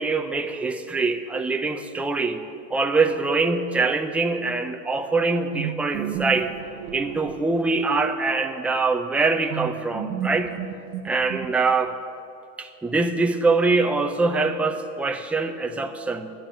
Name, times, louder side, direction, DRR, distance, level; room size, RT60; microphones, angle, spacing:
voice 1, 0.0-2.4 2.7-6.5 6.9-10.5 11.0-12.0 12.6-16.3, right 3 dB, 5° right, 5 dB, 0.5 m, -23 dB
sound 1, 5.5-8.1 9.5-11.9, right 9 dB, 50° right, 1.0 m, -33 dB
12.0 x 8.8 x 8.8 m, 2.5 s
supercardioid pair, 130°, 39 cm